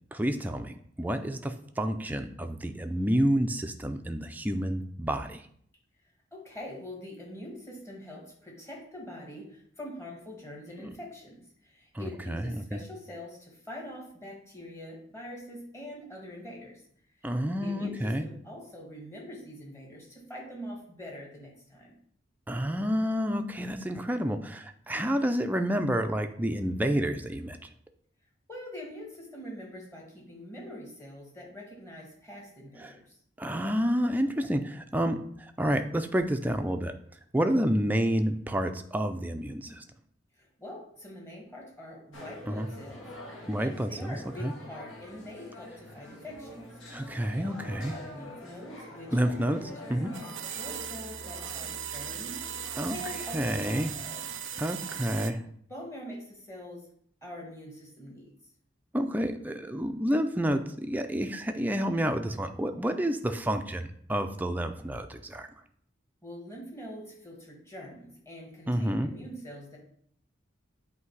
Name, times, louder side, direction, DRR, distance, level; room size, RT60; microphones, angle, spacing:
voice 1, 0.1-5.4 10.8-10.9 11.9-12.8 17.2-18.3 22.5-27.7 32.8-33.0 33.4-36.9 37.3-39.8 42.5-42.7 43.5-44.5 46.9-48.0 49.1-49.6 49.9-50.1 52.8-53.0 53.3-53.9 54.6-55.4 58.9-65.5 68.7-69.2, equal, 10° right, 6 dB, 0.4 m, -29 dB
voice 2, 6.3-16.8 17.6-22.0 28.5-33.2 40.4-43.1 43.6-47.1 47.3-54.3 54.8-54.9 55.7-56.9 57.2-58.3 66.2-69.8, left 1 dB, 15° left, -2 dB, 1.6 m, -44 dB
sound 1, 42.1-55.5, left 1 dB, 80° left, 1.4 m, -46 dB
sound 2, 50.1-55.3, right 10 dB, 75° right, 0.4 m, -38 dB
8.2 x 2.8 x 4.6 m, 0.63 s
head